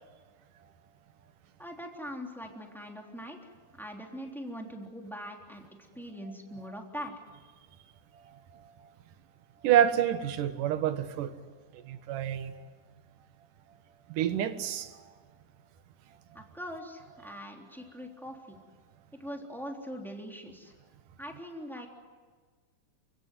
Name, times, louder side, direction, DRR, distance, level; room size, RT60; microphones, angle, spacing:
voice 1, 1.6-5.7 5.9-7.1 16.3-18.6 19.2-20.7 21.2-21.9, equal, ahead, 2.9 m, -42 dB
voice 2, 9.6-11.3 11.7-12.5 14.1-14.9, right 10 dB, 70° right, 2.7 m, -27 dB
30.0 x 17.0 x 9.4 m
omnidirectional pair, 4.2 m